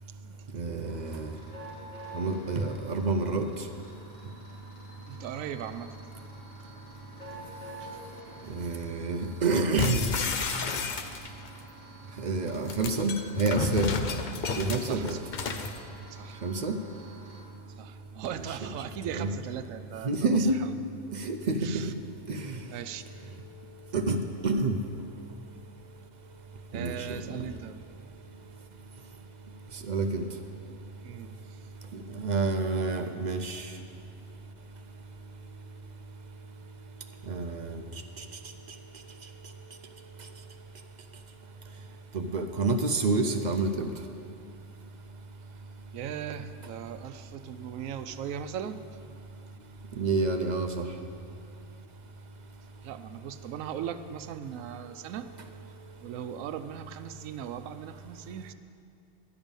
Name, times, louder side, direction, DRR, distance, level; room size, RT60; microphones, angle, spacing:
voice 1, 0.5-1.3 2.1-3.5 8.5-10.0 12.2-14.0 14.5-15.2 16.4-16.8 18.3-18.7 19.1-19.3 20.0-20.6 21.1-21.8 22.3-22.6 23.9-24.8 26.7-27.4 29.9-30.2 32.1-33.7 37.3-37.8 38.2-38.3 42.1-43.9 50.0-50.9, right 3 dB, 50° right, 6 dB, 0.5 m, -28 dB
sound 1, 0.8-17.4, right 1 dB, 35° left, 2.9 m, -49 dB
voice 2, 5.1-6.0 7.8-8.0 8.4-8.5 14.9-15.2 16.1-16.4 17.8-20.7 21.6-21.9 22.7-23.0 26.7-27.8 31.0-31.6 45.9-48.8 52.8-55.3 56.0-58.5, right 9 dB, 85° right, 11 dB, 1.0 m, -39 dB
sound 2, 9.8-11.5 12.5-15.8, left 5 dB, 50° left, 0.6 m, -31 dB
12.0 x 5.3 x 8.8 m, 2.5 s
omnidirectional pair, 1.3 m